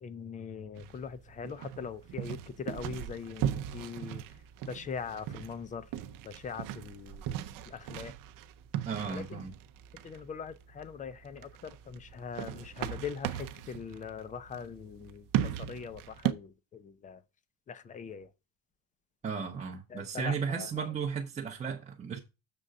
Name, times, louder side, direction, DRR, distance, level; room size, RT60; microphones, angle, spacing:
voice 1, 0.0-4.2 4.7-5.8 6.3-7.2 7.7-8.1 9.1-9.4 10.0-15.2 15.7-17.2 17.7-18.3 19.9-20.7, left 6 dB, 20° left, 0.3 m, -41 dB
sound 1, 0.8-16.3, right 11 dB, 55° right, 0.6 m, -38 dB
voice 2, 8.9-9.5 19.2-22.2, right 6 dB, 20° right, 0.6 m, -35 dB
6.8 x 3.7 x 6.3 m
cardioid pair, 175°, 39 cm